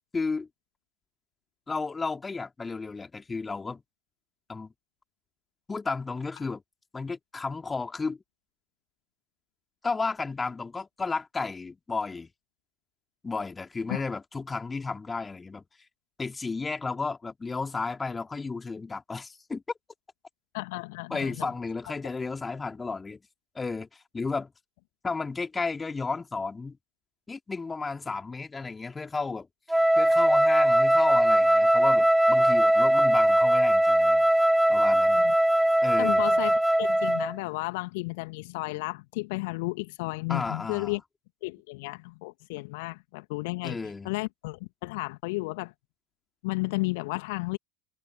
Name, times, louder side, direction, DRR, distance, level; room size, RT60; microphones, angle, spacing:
voice 1, 0.1-0.5 1.7-3.8 4.5-4.7 5.7-6.6 6.9-8.2 9.8-12.3 13.2-15.6 16.2-19.6 21.1-23.2 23.6-23.9 24.1-24.5 25.0-26.8 27.3-29.5 30.0-34.3 34.7-35.2 35.8-36.2 40.3-41.0 43.6-44.1, left 4 dB, 15° left, 3.6 m, -33 dB
voice 2, 20.5-21.5 35.1-35.3 36.0-41.0 41.4-43.8 44.0-45.7 46.4-47.6, left 25 dB, 55° left, 2.0 m, -33 dB
Wind instrument woodwind instrument, 29.7-37.3, right 1 dB, 5° right, 1.6 m, -21 dB
figure-of-eight pair, 80°, 0 cm